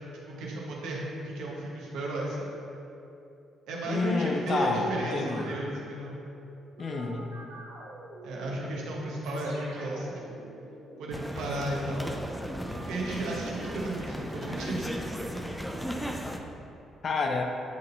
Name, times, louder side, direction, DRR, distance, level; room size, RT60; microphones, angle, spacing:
voice 1, 0.4-2.5 3.7-6.2 8.2-10.4 11.0-12.1 12.8-15.0, right 1 dB, 70° right, -3 dB, 1.2 m, -34 dB
voice 2, 3.9-5.6 6.8-7.3 17.0-17.4, left 3 dB, 45° left, 3 dB, 0.7 m, -29 dB
sound 1, 4.5-5.6 6.8-11.2, right 1 dB, 90° right, 1.2 m, -47 dB
sound 2, 11.1-16.4, equal, 5° left, 0.7 m, -36 dB
12.0 x 4.1 x 2.7 m, 2.8 s
hypercardioid pair, 45°, 0 cm